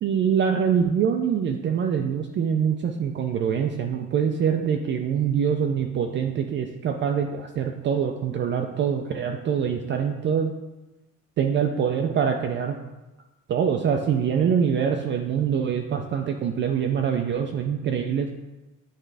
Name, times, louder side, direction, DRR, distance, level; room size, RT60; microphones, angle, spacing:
voice 1, 0.0-10.5 11.4-12.8 13.5-18.3, right 7 dB, 35° right, 3 dB, 0.4 m, -24 dB
8.8 x 3.6 x 3.3 m, 1.1 s
cardioid pair, 150°, 32 cm